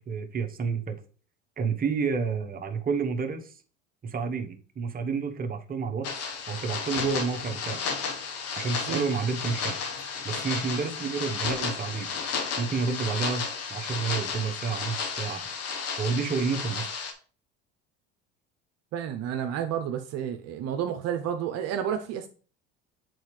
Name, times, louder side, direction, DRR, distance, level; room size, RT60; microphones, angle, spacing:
voice 1, 0.1-1.0 1.6-3.5 4.0-7.8 8.6-9.8 10.2-12.1 12.6-13.4 13.7-15.4 16.0-16.9, right 5 dB, 30° right, 1.0 m, -30 dB
sound 1, 6.0-17.1, left 5 dB, 55° left, 1.2 m, -33 dB
voice 2, 18.9-22.3, right 9 dB, 60° right, 0.7 m, -30 dB
7.8 x 4.1 x 3.2 m
supercardioid pair, 90°, 29 cm